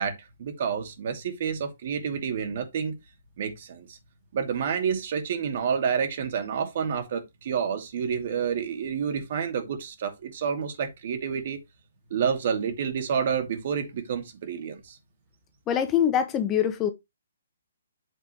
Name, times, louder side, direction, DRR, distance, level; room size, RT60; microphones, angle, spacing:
voice 1, 0.0-2.9 3.4-4.0 4.3-11.6 12.1-15.0, right 7 dB, 50° right, 2.6 m, -29 dB
voice 2, 15.7-16.9, left 9 dB, 20° left, 1.3 m, -24 dB
8.5 x 7.5 x 3.1 m
figure-of-eight pair, 130°, 0 cm